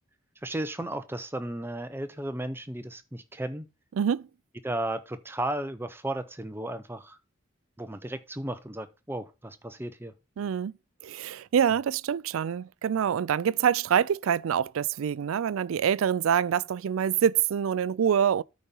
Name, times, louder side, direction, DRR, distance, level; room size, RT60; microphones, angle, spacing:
voice 1, 0.4-3.7 4.6-7.2 7.8-10.1, right 1 dB, 10° right, 0.7 m, -34 dB
voice 2, 10.4-10.8 11.0-18.4, right 8 dB, 80° right, 0.3 m, -25 dB
9.3 x 4.2 x 5.4 m
head